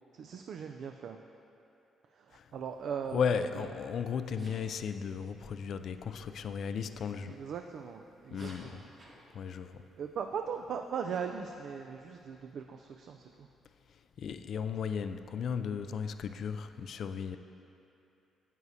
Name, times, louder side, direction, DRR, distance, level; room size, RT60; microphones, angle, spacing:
voice 1, 0.1-1.2 2.1-3.7 4.4-4.5 7.3-8.8 10.0-13.5, right 6 dB, 65° right, 4 dB, 0.3 m, -39 dB
voice 2, 3.1-7.4 8.3-8.8 9.3-9.8 13.9-17.4, left 6 dB, 65° left, 10 dB, 0.3 m, -35 dB
Sneeze, 3.6-3.8 4.4-4.7 7.2-7.4 8.2-9.1, right 2 dB, 45° right, 1.5 m, -54 dB
9.1 x 8.4 x 2.7 m, 2.8 s
cardioid pair, 90°, 0 cm